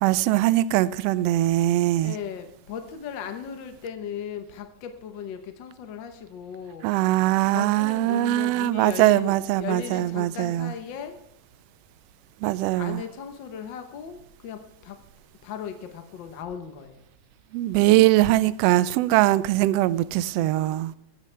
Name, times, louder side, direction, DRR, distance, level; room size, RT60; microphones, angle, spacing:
voice 1, 0.0-2.1 6.8-10.7 12.4-13.0 17.5-20.9, right 16 dB, 90° right, 1.4 m, -21 dB
voice 2, 2.0-6.9 7.5-11.2 12.7-15.0 15.4-17.0 20.4-21.0, left 8 dB, 65° left, 1.2 m, -37 dB
16.0 x 11.5 x 3.3 m
omnidirectional pair, 3.3 m